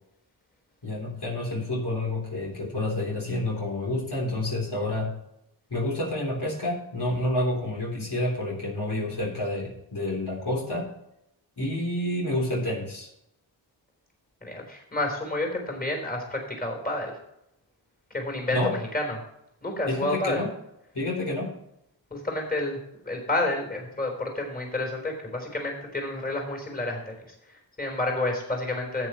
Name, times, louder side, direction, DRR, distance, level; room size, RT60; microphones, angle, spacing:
voice 1, 0.8-5.1 5.7-10.9 11.6-13.1 18.5-18.8 19.9-20.5 20.9-21.6, left 1 dB, 55° left, -2 dB, 3.4 m, -29 dB
voice 2, 14.4-17.1 18.1-18.6 18.9-19.2 19.6-20.4 22.1-27.1 27.5-29.1, left 2 dB, 20° left, 2 dB, 3.8 m, -30 dB
13.5 x 8.8 x 3.1 m, 0.79 s
wide cardioid pair, 65°, 47 cm